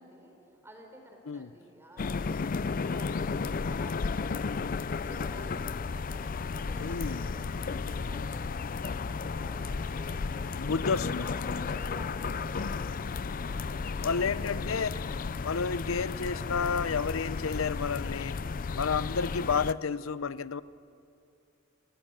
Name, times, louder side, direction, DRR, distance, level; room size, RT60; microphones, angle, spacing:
voice 1, 0.0-10.9 11.2-13.5 13.9-14.6, right 1 dB, 10° right, 2 dB, 4.1 m, -52 dB
sound 1, 0.7-18.8, right 2 dB, 55° right, 7.6 m, -57 dB
sound 2, 2.0-19.7, left 4 dB, 45° left, 0.5 m, -33 dB
voice 2, 6.8-7.3 10.6-11.3 14.0-14.9 15.4-18.4 18.7-20.6, left 5 dB, 85° left, 17 dB, 0.7 m, -31 dB
25.0 x 17.0 x 9.0 m, 2.6 s
head